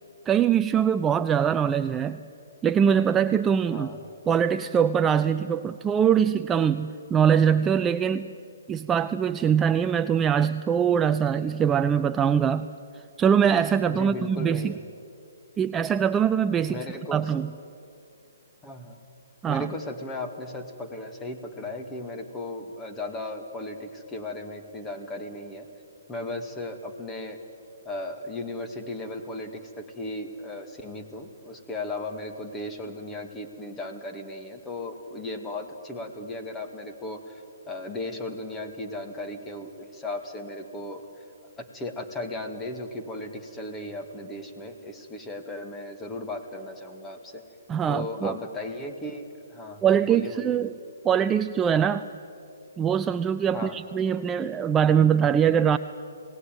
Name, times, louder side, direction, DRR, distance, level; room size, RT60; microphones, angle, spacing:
voice 1, 0.3-2.2 2.6-3.9 4.3-8.3 8.7-12.7 13.2-14.7 15.6-16.8 17.1-17.5 19.4-19.7 47.7-48.4 49.8-50.7 51.0-52.1 52.8-55.8, right 8 dB, 15° right, 10 dB, 0.5 m, -22 dB
voice 2, 3.7-4.0 13.8-14.9 16.7-17.3 18.6-19.0 19.5-25.7 26.1-27.4 27.9-41.0 41.6-47.4 47.9-50.6 53.5-53.8, left 2 dB, 10° left, 5 dB, 2.2 m, -36 dB
27.5 x 18.5 x 9.2 m, 2.6 s
hypercardioid pair, 140°, 0 cm